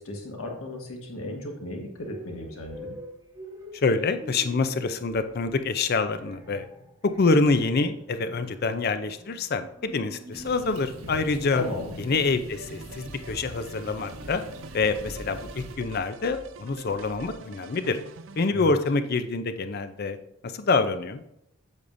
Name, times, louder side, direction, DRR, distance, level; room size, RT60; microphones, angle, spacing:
voice 1, 0.0-3.0 11.5-12.0 18.5-18.7, left 1 dB, 85° left, 2 dB, 1.6 m, -35 dB
sound 1, 2.0-17.3, equal, 15° right, 1.0 m, -47 dB
voice 2, 3.8-6.7 7.0-11.6 12.0-14.4 14.7-18.0 18.4-20.2 20.4-21.2, left 3 dB, 50° left, 10 dB, 0.5 m, -26 dB
sound 2, 10.3-15.8, right 1 dB, 90° right, 1.1 m, -43 dB
sound 3, 12.5-18.5, right 4 dB, 60° right, 0.4 m, -46 dB
8.1 x 7.0 x 2.6 m, 0.79 s
head